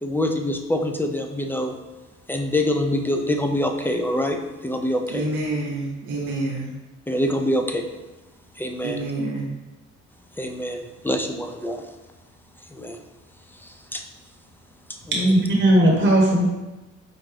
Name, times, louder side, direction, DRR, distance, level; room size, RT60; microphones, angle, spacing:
voice 1, 0.0-1.7 2.3-5.2 7.1-7.9 8.6-9.0 10.4-11.8 12.7-13.0 13.6-14.0 15.1-15.3, left 1 dB, 5° left, 4 dB, 0.3 m, -25 dB
voice 2, 5.1-6.7 8.8-9.5, right 2 dB, 85° right, -2 dB, 0.8 m, -28 dB
voice 3, 15.1-16.4, right 1 dB, 35° right, -2 dB, 0.9 m, -17 dB
4.5 x 2.5 x 3.2 m, 1.1 s
cardioid pair, 90°, 30 cm